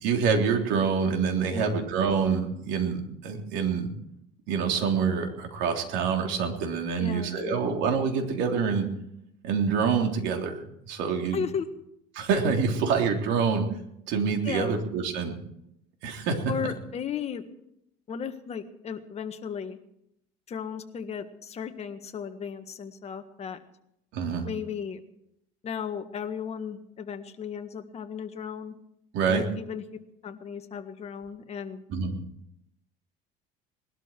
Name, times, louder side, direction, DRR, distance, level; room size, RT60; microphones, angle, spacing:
voice 1, 0.0-3.9 4.5-8.9 9.4-11.4 12.2-13.7 14.1-15.4 16.0-16.4 24.1-24.5 29.1-29.5 31.9-32.2, right 6 dB, 75° right, 3 dB, 3.4 m, -26 dB
voice 2, 1.5-1.8 7.0-7.8 11.3-11.8 14.4-14.8 16.5-17.5 18.1-19.8 20.5-23.6 24.4-25.0 25.6-28.8 29.3-29.8 30.2-31.8, left 7 dB, 35° left, 7 dB, 1.6 m, -35 dB
20.0 x 12.5 x 4.5 m, 0.76 s
cardioid pair, 130°, 19 cm